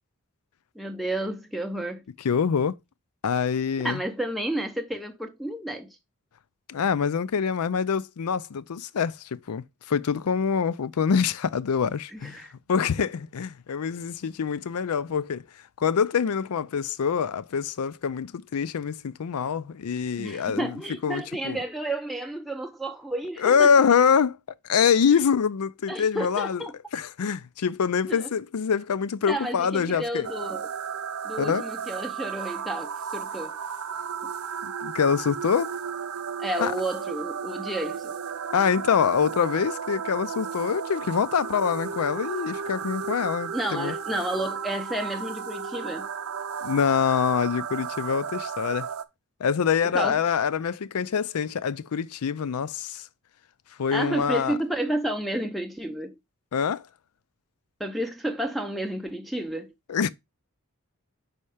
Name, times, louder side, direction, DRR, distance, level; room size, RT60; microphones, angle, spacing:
voice 1, 0.8-2.0 3.8-6.0 12.1-12.5 20.2-23.7 25.9-26.7 28.1-28.3 29.3-30.7 31.2-33.6 34.2-34.3 36.4-38.1 43.5-46.1 49.9-50.2 53.9-56.2 57.8-59.7, right 1 dB, ahead, 0.6 m, -31 dB
voice 2, 2.2-2.7 3.2-4.0 6.7-15.4 15.8-20.7 21.0-21.6 23.4-24.4 24.6-26.6 26.9-30.3 31.4-31.6 34.6-35.7 36.6-36.7 38.5-43.9 46.6-48.9 49.4-53.1 53.8-54.6 56.5-56.8 59.9-60.1, left 6 dB, 75° left, 0.5 m, -25 dB
sound 1, 30.2-49.0, right 7 dB, 70° right, 0.6 m, -34 dB
5.5 x 4.3 x 4.9 m
head